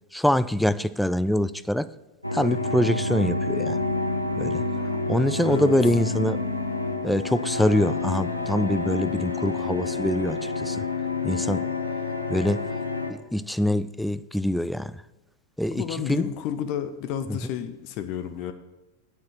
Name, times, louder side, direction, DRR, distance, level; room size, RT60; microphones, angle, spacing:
voice 1, 0.1-1.9 2.3-3.8 4.4-4.6 5.1-6.4 7.0-10.8 11.2-11.7 12.3-12.6 13.3-15.0 15.6-16.3, left 1 dB, ahead, 0.3 m, -24 dB
sound 1, 2.2-13.1, left 3 dB, 85° left, 0.8 m, -28 dB
voice 2, 15.7-18.5, left 9 dB, 40° left, 0.7 m, -31 dB
8.8 x 7.1 x 5.7 m
figure-of-eight pair, 90°, 0 cm